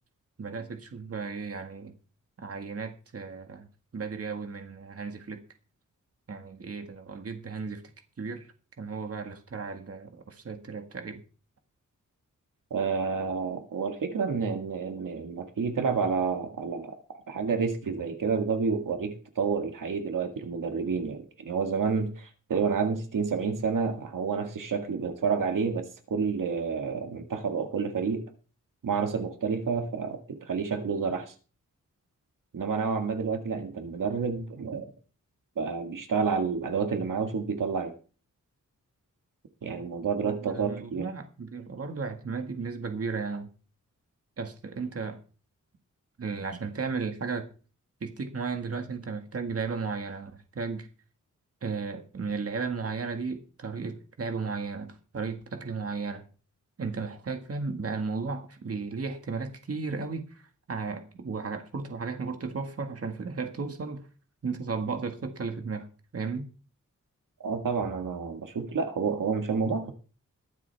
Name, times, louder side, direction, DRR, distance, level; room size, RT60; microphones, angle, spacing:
voice 1, 0.4-1.9 2.4-3.7 3.9-5.4 6.3-7.8 8.2-8.5 8.8-11.2 40.2-43.5 44.4-45.2 46.2-47.5 48.0-50.9 51.6-56.2 56.8-60.4 60.7-64.0 64.4-65.9 66.1-66.5, right 4 dB, 50° right, 1.8 m, -34 dB
voice 2, 12.7-17.0 17.3-28.2 28.8-31.3 32.5-34.9 35.6-37.9 39.6-41.1 67.4-69.9, right 5 dB, 80° right, 1.9 m, -29 dB
22.0 x 7.6 x 3.5 m
wide cardioid pair, 130°, 32 cm